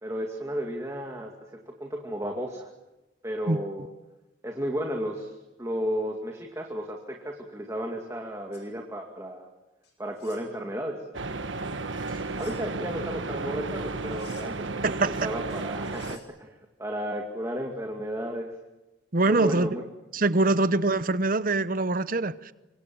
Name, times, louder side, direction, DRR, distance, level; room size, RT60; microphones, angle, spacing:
voice 1, 0.0-2.7 3.2-3.9 4.4-5.3 5.6-9.5 10.0-11.0 12.4-18.6 19.3-19.8 20.5-20.6, equal, 15° right, 1 dB, 2.4 m, -33 dB
sound 1, 8.5-8.7 9.8-10.5 12.1-12.7 13.9-14.7 15.5-16.3, left 7 dB, 65° left, 7.3 m, -54 dB
sound 2, 11.1-16.2, right 3 dB, 80° right, 1.4 m, -33 dB
voice 2, 14.8-15.3 19.1-19.7 20.1-22.5, right 2 dB, 45° right, 14 dB, 0.9 m, -24 dB
27.0 x 25.0 x 7.8 m, 1.0 s
head